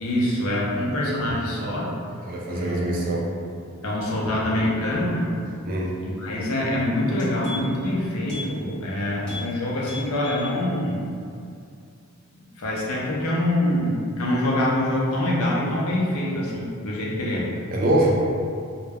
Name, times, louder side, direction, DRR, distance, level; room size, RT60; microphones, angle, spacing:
voice 1, 0.0-1.9 2.5-3.1 3.8-5.3 6.0-11.0 12.3-17.5, left 1 dB, 80° left, -4 dB, 0.6 m, -25 dB
voice 2, 2.2-3.2 5.6-5.9 17.7-18.1, right 1 dB, 40° right, -3 dB, 0.3 m, -23 dB
sound 1, 7.2-7.9 8.2-8.5 8.8-8.9 9.2-9.5 9.8-10.5 10.9-11.0, left 2 dB, 5° left, 0.9 m, -37 dB
2.2 x 2.1 x 3.4 m, 2.4 s
head